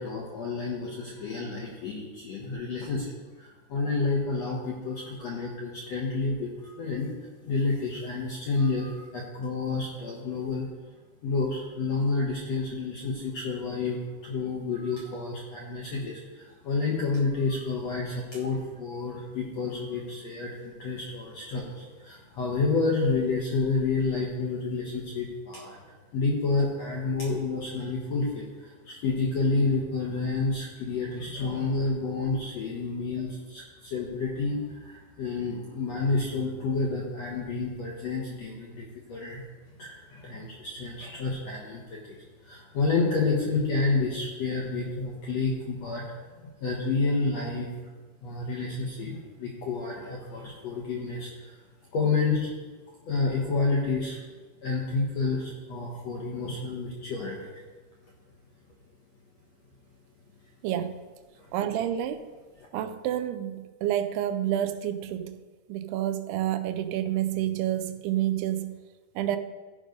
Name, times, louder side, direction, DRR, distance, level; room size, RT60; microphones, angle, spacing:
voice 1, 0.0-3.1 3.4-7.1 7.4-10.7 11.2-25.8 26.1-39.4 39.8-47.7 48.2-51.6 51.9-52.5 53.1-54.2 54.6-57.6 61.4-61.5, left 3 dB, 70° left, -2 dB, 1.6 m, -29 dB
voice 2, 60.6-61.0 61.5-62.3 62.7-65.4 65.7-68.8 69.2-69.4, right 11 dB, 90° right, 9 dB, 2.6 m, -29 dB
14.5 x 5.3 x 5.2 m, 1.3 s
omnidirectional pair, 4.6 m